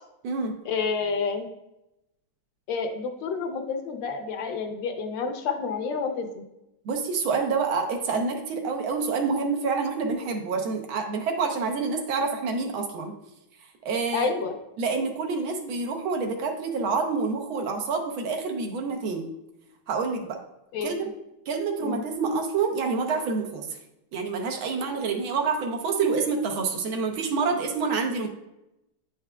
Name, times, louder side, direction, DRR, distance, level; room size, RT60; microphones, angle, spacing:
voice 1, 0.6-1.5 2.7-6.4 14.1-14.5 20.7-21.0 21.8-22.0, left 5 dB, 70° left, 5 dB, 1.2 m, -29 dB
voice 2, 6.8-13.1 13.8-14.3 14.8-19.3 19.9-20.4 20.8-21.1 21.5-23.6 24.1-28.3, right 4 dB, 90° right, 3 dB, 1.6 m, -27 dB
9.0 x 4.7 x 2.2 m, 0.90 s
omnidirectional pair, 2.2 m